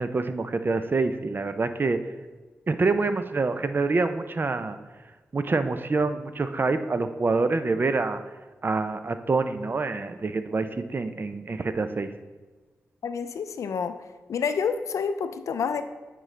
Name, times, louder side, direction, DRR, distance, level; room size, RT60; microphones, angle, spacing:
voice 1, 0.0-2.0 2.7-4.8 5.3-8.2 8.6-12.1, right 3 dB, 40° right, 9 dB, 0.4 m, -26 dB
voice 2, 13.0-15.8, left 6 dB, 85° left, 10 dB, 0.4 m, -29 dB
8.9 x 3.8 x 3.2 m, 1.3 s
cardioid pair, 65°, 5 cm